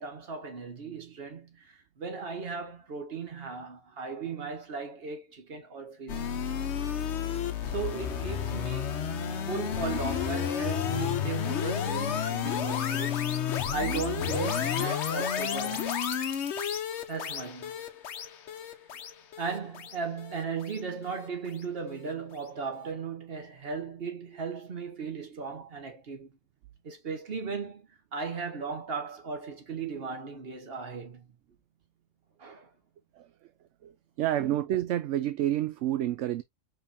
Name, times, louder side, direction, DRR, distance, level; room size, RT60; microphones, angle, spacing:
voice 1, 0.0-6.4 7.6-13.2 13.5-15.9 17.1-17.7 19.4-26.3 26.8-27.9 28.1-31.3 32.4-32.7, right 5 dB, 50° right, 1.4 m, -37 dB
sound 1, 6.1-21.3, left 8 dB, 60° left, 1.0 m, -31 dB
voice 2, 34.2-36.4, right 12 dB, 70° right, 0.8 m, -28 dB
5.3 x 3.5 x 2.6 m
omnidirectional pair, 1.4 m